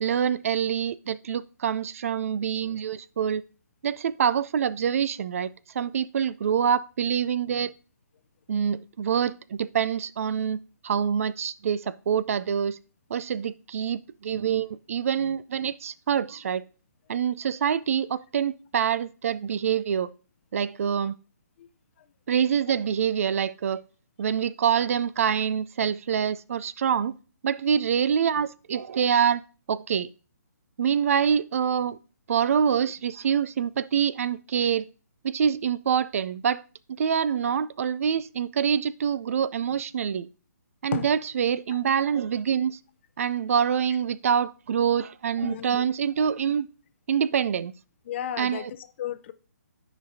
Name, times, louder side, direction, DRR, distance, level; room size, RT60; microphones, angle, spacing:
voice 1, 0.0-3.4 3.8-7.7 8.5-12.8 13.1-16.6 17.1-20.1 20.5-21.1 22.3-23.8 24.2-27.1 27.4-29.4 29.7-30.1 30.8-32.0 32.3-34.9 35.2-36.6 36.9-40.3 40.8-42.8 43.2-46.7 47.1-47.7 48.4-48.7, right 8 dB, 55° right, 0.4 m, -26 dB
voice 2, 45.4-45.9 48.1-49.3, left 10 dB, 40° left, 0.5 m, -33 dB
12.5 x 5.0 x 2.7 m
figure-of-eight pair, 140°, 9 cm